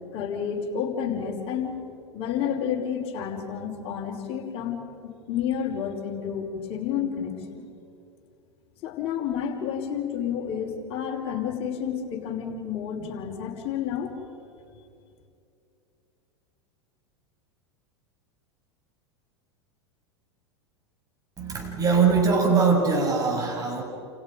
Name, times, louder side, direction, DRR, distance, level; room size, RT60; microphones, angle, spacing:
voice 1, 0.1-1.8 2.1-7.6 8.8-14.2, left 8 dB, 45° left, 0 dB, 5.2 m, -30 dB
voice 2, 21.4-23.8, right 5 dB, 25° right, 1 dB, 7.3 m, -22 dB
30.0 x 29.5 x 5.3 m, 2.6 s
figure-of-eight pair, 85°, 14 cm